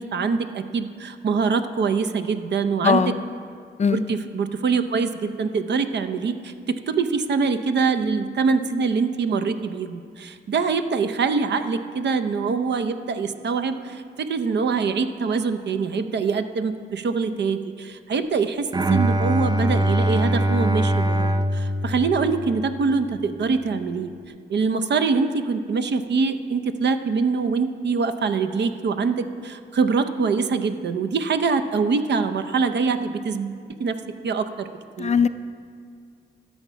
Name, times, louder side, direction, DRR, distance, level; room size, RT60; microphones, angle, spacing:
voice 1, 0.0-3.2 3.9-24.1 24.5-34.0 34.2-34.7 35.0-35.1, right 5 dB, 70° right, 9 dB, 0.7 m, -24 dB
voice 2, 2.8-3.3 3.8-4.0 35.0-35.3, left 5 dB, 40° left, 12 dB, 0.4 m, -20 dB
Bowed string instrument, 18.7-22.9, right 1 dB, 20° right, 0.5 m, -22 dB
13.0 x 7.2 x 5.7 m, 2.2 s
cardioid pair, 85°, 19 cm